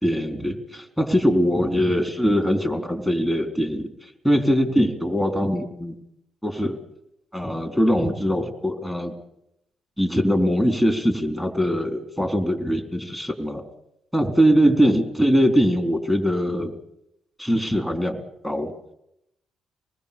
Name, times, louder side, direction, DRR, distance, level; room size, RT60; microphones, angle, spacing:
voice 1, 0.0-3.9 4.2-5.9 6.4-6.8 7.3-9.1 10.0-13.6 14.1-16.7 17.4-18.7, equal, 5° right, 5 dB, 3.9 m, -22 dB
25.5 x 20.0 x 7.0 m, 0.80 s
cardioid pair, 90°, 0 cm